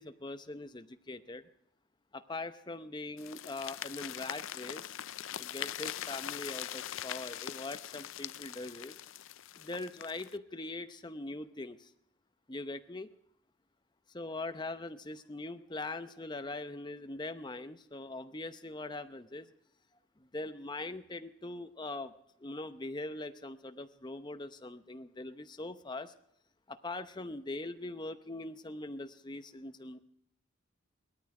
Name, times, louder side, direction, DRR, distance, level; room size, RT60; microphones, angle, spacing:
voice 1, 0.0-1.4 2.1-5.0 5.4-9.0 9.6-11.9 12.5-13.1 14.1-19.5 20.2-22.1 22.4-26.1 26.7-30.0, left 2 dB, 20° left, 10 dB, 0.7 m, -42 dB
sound 1, 3.2-10.4, left 11 dB, 70° left, 0.5 m, -42 dB
18.0 x 13.0 x 4.9 m, 0.74 s
head